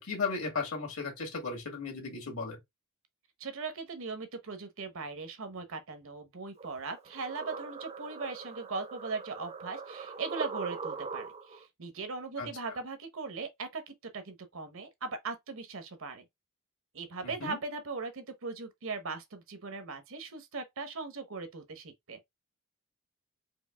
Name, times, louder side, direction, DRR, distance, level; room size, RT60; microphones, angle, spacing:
voice 1, 0.0-2.6 12.4-12.5 17.2-17.6, left 4 dB, 65° left, 1.6 m, -35 dB
voice 2, 3.4-16.2 16.9-22.2, right 4 dB, 60° right, 0.9 m, -39 dB
sound 1, 6.6-11.6, right 4 dB, 30° right, 0.5 m, -41 dB
4.6 x 2.8 x 2.2 m
head